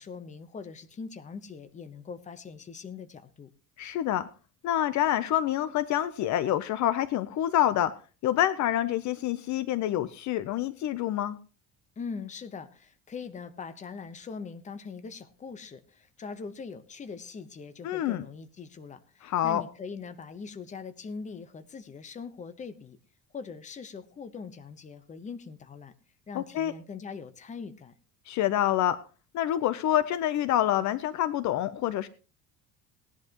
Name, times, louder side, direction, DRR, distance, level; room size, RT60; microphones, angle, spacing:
voice 1, 0.0-3.5 12.0-23.0 23.3-25.9 26.3-27.9, left 5 dB, 20° left, 11 dB, 0.9 m, -42 dB
voice 2, 3.8-4.3 4.6-7.9 8.2-11.4 17.8-18.2 19.2-19.6 26.3-26.7 28.3-29.0 29.3-32.1, left 12 dB, 55° left, 14 dB, 0.7 m, -27 dB
18.0 x 10.5 x 2.9 m, 0.35 s
cardioid pair, 155°, 35 cm